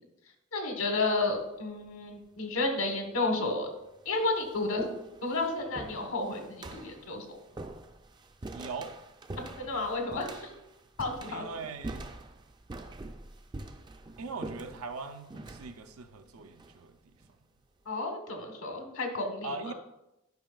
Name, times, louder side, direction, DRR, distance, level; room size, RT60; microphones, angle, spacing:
voice 1, 0.5-3.7 4.0-4.8 5.2-7.3 9.6-10.5 11.0-11.4 17.9-19.7, left 2 dB, 75° left, 4 dB, 1.2 m, -31 dB
sound 1, 1.0-1.4 2.4-2.5 3.3-3.4 3.8-17.3, right 2 dB, 20° right, 0.3 m, -45 dB
voice 2, 8.5-8.9 11.3-12.1 14.2-17.1 19.4-19.7, right 4 dB, 85° right, 7 dB, 0.6 m, -40 dB
10.5 x 5.2 x 2.4 m, 0.91 s
head